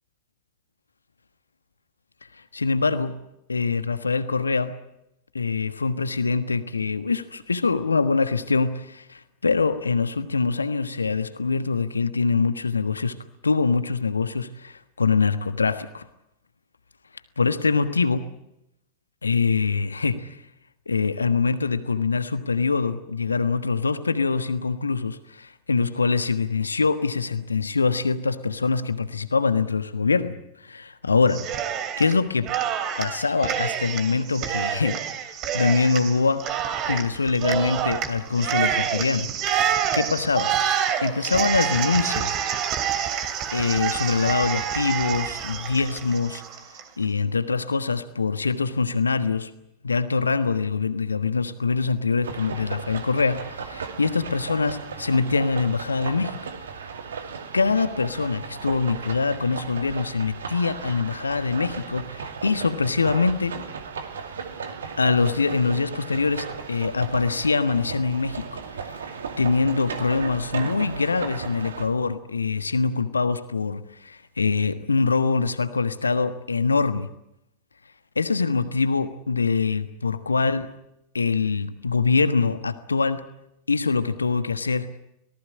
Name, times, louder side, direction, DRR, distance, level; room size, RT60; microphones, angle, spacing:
voice 1, 2.5-3.2 3.5-4.7 5.3-13.2 13.4-16.0 17.4-18.3 19.2-20.4 20.9-31.4 32.0-32.5 33.0-35.0 35.5-36.5 36.9-39.3 39.9-40.6 41.0-42.4 43.5-46.4 47.0-49.5 49.8-56.4 57.5-63.6 65.0-68.9 69.4-77.1 78.1-80.7 81.1-83.2 83.7-84.9, left 4 dB, 75° left, 11 dB, 1.4 m, -24 dB
Cheering, 31.3-32.1 32.4-46.8, right 9 dB, 35° right, 2.8 m, -27 dB
sound 1, 52.2-71.9, right 6 dB, 65° right, 2.5 m, -36 dB
25.5 x 18.5 x 9.7 m, 0.85 s
figure-of-eight pair, 90°, 0 cm